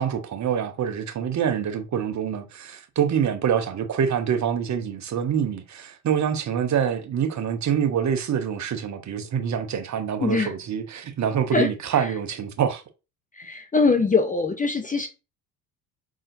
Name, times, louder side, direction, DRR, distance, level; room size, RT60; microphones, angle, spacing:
voice 1, 0.0-12.8, right 8 dB, 35° right, 1.0 m, -25 dB
voice 2, 10.2-10.5 11.5-11.7 11.9-12.1 13.4-15.1, left 4 dB, 15° left, 0.7 m, -22 dB
5.4 x 3.7 x 2.6 m
hypercardioid pair, 70°, 48 cm